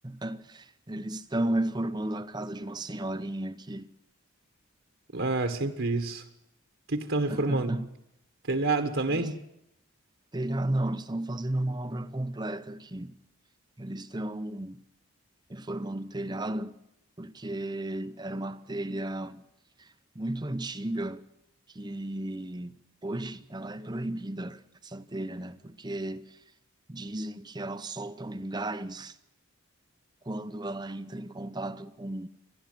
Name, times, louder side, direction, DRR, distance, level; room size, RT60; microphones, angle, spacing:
voice 1, 0.0-3.9 7.2-7.9 9.1-9.3 10.3-13.1 13.8-14.8 15.5-16.8 17.2-19.4 19.8-21.2 21.7-26.4 26.9-29.2 30.2-32.3, right 1 dB, 20° right, 0.7 m, -34 dB
voice 2, 5.1-6.2 6.9-7.7 8.5-9.4, right 3 dB, 60° right, 1.5 m, -28 dB
28.5 x 12.0 x 9.2 m
head